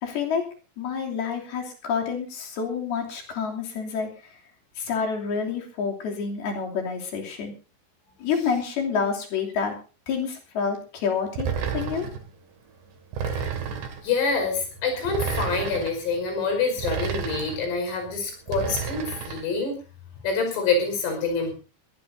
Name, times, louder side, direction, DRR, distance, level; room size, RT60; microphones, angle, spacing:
voice 1, 0.0-0.4 0.8-4.1 4.8-7.5 8.2-9.7 10.1-12.1, left 6 dB, 55° left, 0 dB, 4.6 m, -28 dB
sound 1, 11.4-12.2 13.1-14.1 15.1-15.9 16.8-17.7 18.5-19.5, right 6 dB, 65° right, 4.2 m, -30 dB
voice 2, 14.0-19.8 20.2-21.5, left 4 dB, 90° left, 4 dB, 7.9 m, -26 dB
22.5 x 17.5 x 2.7 m, 0.34 s
omnidirectional pair, 5.7 m